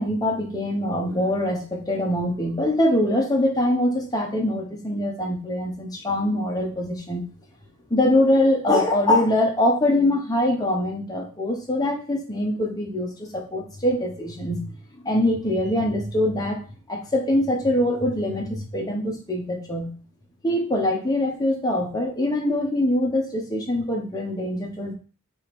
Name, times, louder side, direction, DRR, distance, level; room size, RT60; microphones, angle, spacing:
voice 1, 0.0-7.2 7.9-16.6 16.9-19.9 20.4-24.9, left 1 dB, 15° left, 0 dB, 0.8 m, -23 dB
3.4 x 3.0 x 4.5 m, 0.38 s
head